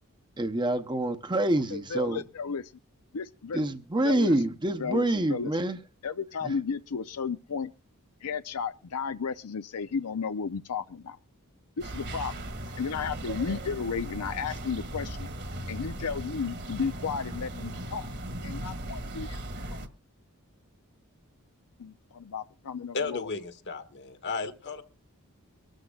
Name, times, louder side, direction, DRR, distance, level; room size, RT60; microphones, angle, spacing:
voice 1, 0.4-2.2 3.5-5.8 6.4-6.5, right 1 dB, 20° right, 0.8 m, -27 dB
voice 2, 1.7-2.7 3.1-3.6 4.0-4.3 4.8-5.5 6.0-7.7 8.2-11.2 11.8-12.3 12.8-15.3 15.7-18.1 18.4-19.4 19.7-19.8 21.8-23.3, left 5 dB, 85° left, 0.6 m, -33 dB
sound 1, 11.8-19.9, right 1 dB, 50° right, 1.7 m, -37 dB
voice 3, 22.9-24.8, left 4 dB, 50° left, 1.4 m, -34 dB
23.5 x 13.0 x 2.4 m
head